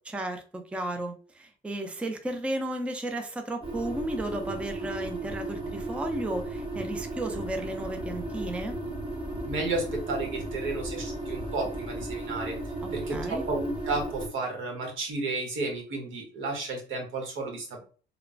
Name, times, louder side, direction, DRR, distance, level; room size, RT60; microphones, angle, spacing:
voice 1, 0.0-8.8 12.8-13.4, right 1 dB, 5° right, 5 dB, 0.4 m, -34 dB
sound 1, 3.6-14.3, right 2 dB, 25° right, 0.8 m, -35 dB
voice 2, 9.5-12.6 12.9-17.8, right 3 dB, 80° right, 1 dB, 1.1 m, -32 dB
3.0 x 2.1 x 2.5 m, 0.39 s
cardioid pair, 90°, 20 cm